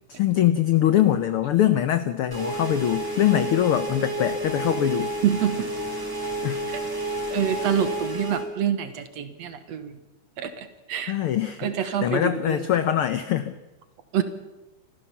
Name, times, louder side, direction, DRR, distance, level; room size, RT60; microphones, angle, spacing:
voice 1, 0.2-5.1 6.4-6.6 11.1-11.7 12.0-13.6, left 11 dB, 80° left, 11 dB, 1.2 m, -23 dB
sound 1, 2.3-8.5, right 1 dB, 5° right, 3.8 m, -30 dB
voice 2, 5.2-5.7 6.7-6.8 7.3-10.0 10.4-11.2 11.6-12.7 14.1-14.2, right 9 dB, 65° right, 10 dB, 2.3 m, -27 dB
26.0 x 15.0 x 7.1 m, 1.1 s
omnidirectional pair, 3.6 m